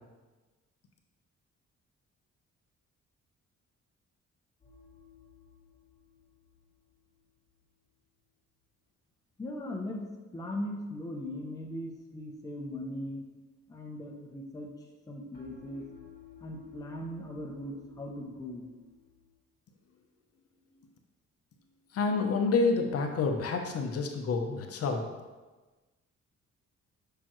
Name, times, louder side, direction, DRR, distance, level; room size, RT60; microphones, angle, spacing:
sound 1, 4.6-7.7 15.3-19.3, left 9 dB, 30° left, 1.6 m, -55 dB
voice 1, 9.4-13.3 13.7-14.7 15.1-15.9 16.4-18.7, left 1 dB, 10° left, -1 dB, 0.6 m, -39 dB
voice 2, 21.9-25.1, left 4 dB, 50° left, 4 dB, 0.7 m, -28 dB
6.7 x 5.9 x 3.0 m, 1.2 s
wide cardioid pair, 165°, 30 cm